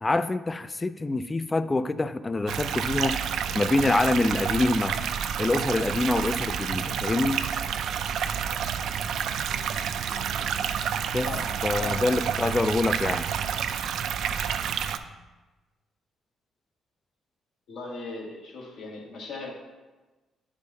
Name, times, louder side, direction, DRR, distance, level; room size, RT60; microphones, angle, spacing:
voice 1, 0.0-3.2 3.5-5.0 5.4-7.4 11.1-11.3 11.6-13.3, left 2 dB, 20° left, 14 dB, 0.3 m, -25 dB
sound 1, 2.5-15.0, right 8 dB, 75° right, 0.4 m, -29 dB
voice 2, 11.2-11.5 11.8-12.0 17.7-19.5, left 3 dB, 70° left, -2 dB, 1.7 m, -38 dB
9.3 x 5.0 x 2.7 m, 1.2 s
cardioid pair, 90°, 0 cm